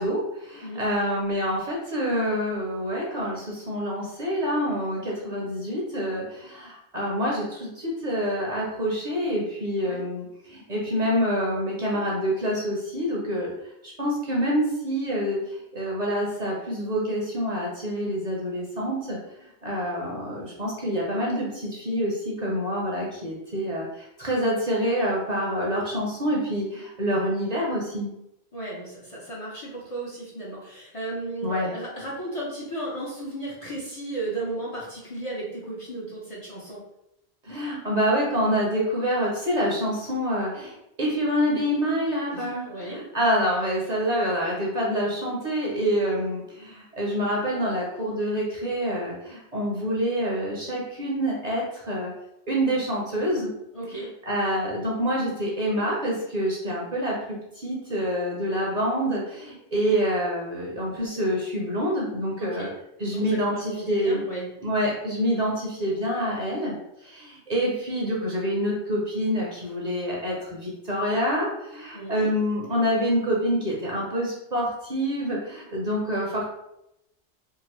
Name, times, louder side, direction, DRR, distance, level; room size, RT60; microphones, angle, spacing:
voice 1, 0.0-13.5 14.0-19.2 19.6-28.1 31.4-31.7 37.4-52.1 52.5-53.5 53.9-62.7 63.0-64.2 64.6-66.7 67.0-76.4, equal, 45° right, -4 dB, 0.7 m, -27 dB
voice 2, 28.5-36.8 42.3-43.0 53.7-54.1 62.4-62.7 63.0-64.5 71.9-72.3, right 2 dB, 35° left, -6 dB, 0.7 m, -35 dB
2.7 x 2.5 x 3.0 m, 0.84 s
omnidirectional pair, 1.1 m